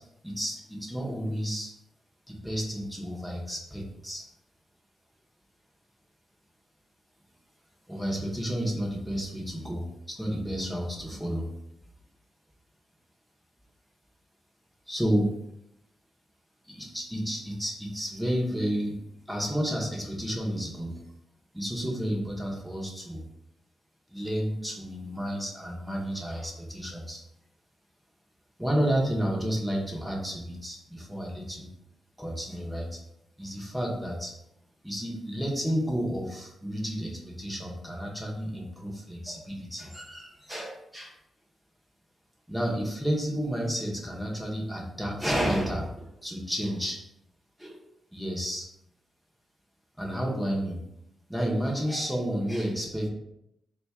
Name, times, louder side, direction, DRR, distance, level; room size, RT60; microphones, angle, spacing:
voice 1, 0.0-1.7 2.3-4.2 7.9-11.5 14.9-15.3 16.6-19.0 19.3-21.0 21.5-23.2 24.1-27.2 28.6-31.7 32.2-33.0 33.4-34.3 34.8-41.1 42.5-47.0 47.6-47.8 48.1-48.7 50.0-50.8 51.3-53.1, equal, 5° right, -2 dB, 0.7 m, -31 dB
4.2 x 2.3 x 4.2 m, 0.80 s
wide cardioid pair, 175°, 0 cm